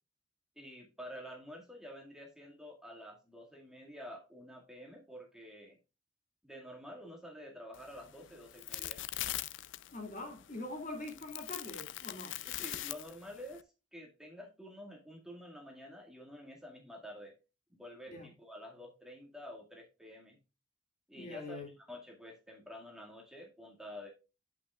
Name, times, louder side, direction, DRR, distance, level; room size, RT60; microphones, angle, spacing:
voice 1, 0.6-5.8 6.4-9.0 12.4-13.7 13.9-17.3 17.7-20.4 21.1-24.1, equal, 5° right, 1.9 m, -49 dB
sound 1, 7.7-13.6, left 14 dB, 75° left, 0.5 m, -42 dB
voice 2, 9.9-12.3 18.1-18.3 21.2-21.7, left 2 dB, 40° left, 2.2 m, -43 dB
8.6 x 8.2 x 2.4 m
head